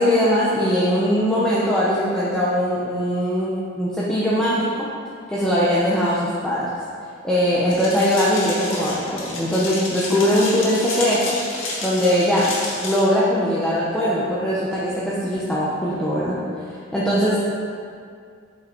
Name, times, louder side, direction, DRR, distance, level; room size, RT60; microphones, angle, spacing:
voice 1, 0.0-4.9 5.3-6.7 7.2-11.4 11.8-12.5 12.8-16.4 16.7-17.5, equal, 5° left, -8 dB, 0.9 m, -21 dB
sound 1, 7.7-13.0, left 2 dB, 85° left, 1.9 m, -30 dB
7.8 x 6.0 x 4.5 m, 2.3 s
head